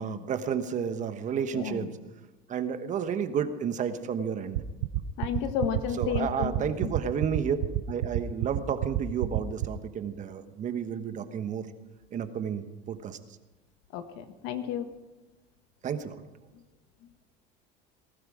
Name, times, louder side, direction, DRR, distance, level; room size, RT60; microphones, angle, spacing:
voice 1, 0.0-1.9 2.5-4.6 6.0-7.6 7.9-11.7 12.1-13.2 15.8-16.2, right 7 dB, 40° right, 9 dB, 1.2 m, -31 dB
voice 2, 1.5-1.9 5.2-6.9 13.9-14.9, left 8 dB, 70° left, 9 dB, 1.5 m, -32 dB
sound 1, 4.5-9.7, right 16 dB, 85° right, 0.9 m, -27 dB
19.5 x 12.5 x 5.0 m, 1.1 s
supercardioid pair, 125°, 20 cm